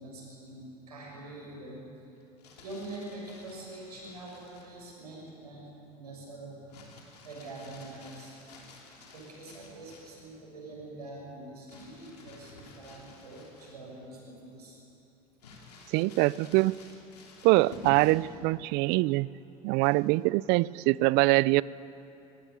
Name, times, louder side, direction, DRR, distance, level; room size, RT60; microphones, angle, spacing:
voice 1, 0.0-1.8 2.6-5.7 5.9-6.6 7.2-8.3 9.1-14.8, right 2 dB, 90° right, -3 dB, 6.8 m, -44 dB
Crumpling crinkling, 2.2-4.8 6.7-10.2 11.7-14.0 14.5-14.6 15.4-18.3 19.8-20.2, left 3 dB, 90° left, 3.0 m, -51 dB
voice 2, 15.9-16.8 17.4-19.3 19.6-21.6, right 21 dB, 60° right, 22 dB, 0.5 m, -24 dB
20.0 x 15.5 x 9.7 m, 2.9 s
hypercardioid pair, 75°, 20 cm